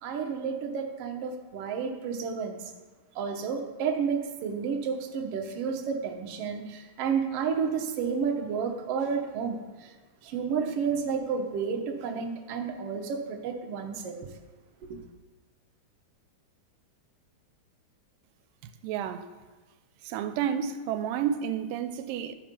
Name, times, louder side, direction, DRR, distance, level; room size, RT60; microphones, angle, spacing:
voice 1, 0.0-2.7 3.1-9.9 10.2-14.3 14.9-15.0, right 6 dB, 65° right, 3 dB, 1.6 m, -31 dB
voice 2, 18.8-19.3 20.0-22.3, right 9 dB, 90° right, 10 dB, 2.3 m, -30 dB
13.5 x 5.1 x 5.2 m, 1.3 s
omnidirectional pair, 3.8 m